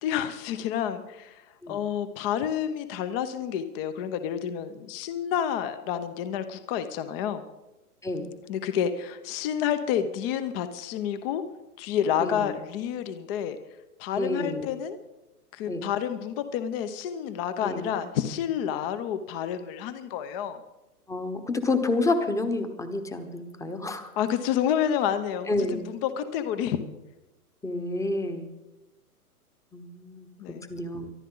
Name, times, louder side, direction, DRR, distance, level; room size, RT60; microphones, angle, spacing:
voice 1, 0.0-1.4 1.7-7.4 8.5-11.4 11.8-13.6 14.0-15.0 15.5-20.6 24.2-26.8 30.4-30.7, left 9 dB, 40° left, 10 dB, 1.0 m, -29 dB
voice 2, 12.2-12.6 14.1-14.7 15.7-15.8 17.6-17.9 21.1-24.1 25.5-25.8 27.6-28.5 29.7-30.3 30.7-31.1, left 2 dB, 5° left, 8 dB, 1.1 m, -29 dB
24.0 x 11.5 x 3.9 m, 1.0 s
hypercardioid pair, 135°, 46 cm